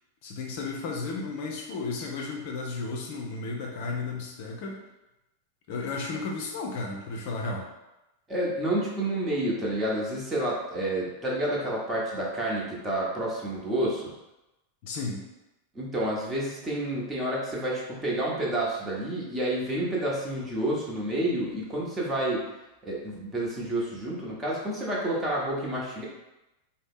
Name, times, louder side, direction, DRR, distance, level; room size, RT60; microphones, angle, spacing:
voice 1, 0.2-4.8 5.7-7.7 14.8-15.2, left 3 dB, 50° left, 0 dB, 0.5 m, -33 dB
voice 2, 8.3-14.1 15.7-22.4 22.8-26.0, right 1 dB, 15° right, -4 dB, 1.0 m, -29 dB
3.9 x 2.1 x 3.5 m, 0.98 s
figure-of-eight pair, 90°, 0 cm